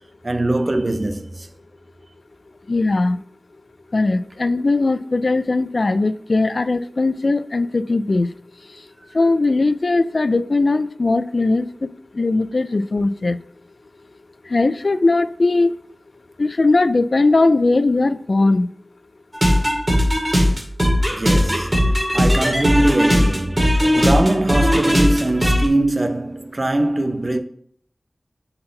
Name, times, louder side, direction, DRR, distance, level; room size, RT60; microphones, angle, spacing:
voice 1, 0.2-1.5 21.1-27.4, right 1 dB, 40° right, 0.7 m, -22 dB
voice 2, 2.7-3.2 3.9-8.3 9.1-11.7 12.2-13.4 14.5-15.7 16.4-18.7, left 3 dB, 60° left, 0.4 m, -19 dB
sound 1, 19.3-25.7, equal, 20° right, 2.3 m, -18 dB
7.7 x 4.4 x 3.9 m
wide cardioid pair, 50°, 0 cm